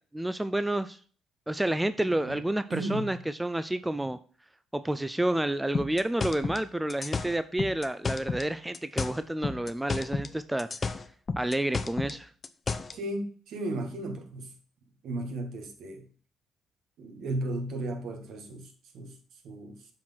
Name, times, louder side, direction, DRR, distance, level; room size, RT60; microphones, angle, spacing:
voice 1, 0.1-1.0 1.5-4.2 4.7-11.0 11.4-12.3, right 1 dB, 10° right, 0.5 m, -29 dB
voice 2, 2.7-3.1 12.7-14.5 15.0-16.0 17.0-19.2 19.4-19.8, right 1 dB, 70° right, 1.9 m, -35 dB
sound 1, 5.7-8.5 8.7-10.3 10.6-13.0, left 4 dB, 35° left, 0.7 m, -32 dB
7.5 x 4.5 x 5.8 m
cardioid pair, 80°, 0 cm